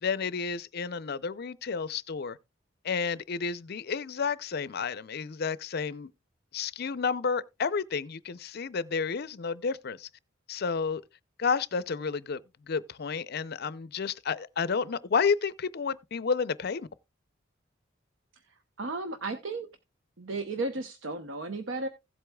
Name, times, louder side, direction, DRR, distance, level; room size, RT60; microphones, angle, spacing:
voice 1, 0.0-2.4 2.8-6.1 6.5-10.1 10.5-11.0 11.4-12.4 12.7-16.9, left 5 dB, 55° left, 0.5 m, -31 dB
voice 2, 18.5-19.7 20.2-21.9, right 3 dB, 80° right, 0.8 m, -34 dB
16.0 x 7.9 x 2.3 m
head